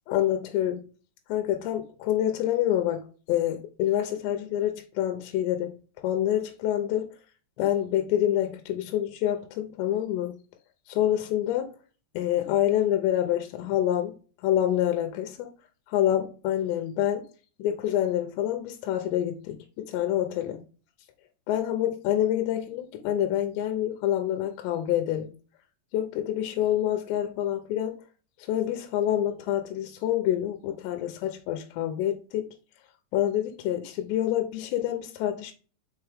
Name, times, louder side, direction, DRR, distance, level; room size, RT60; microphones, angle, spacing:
voice 1, 0.1-0.8 1.3-7.2 7.6-10.4 10.9-11.7 12.1-14.2 14.4-15.5 15.9-17.3 17.6-20.6 21.5-25.3 25.9-28.0 28.5-32.6 33.1-35.5, left 11 dB, 80° left, 2.8 m, -27 dB
5.8 x 4.9 x 3.5 m
omnidirectional pair, 5.4 m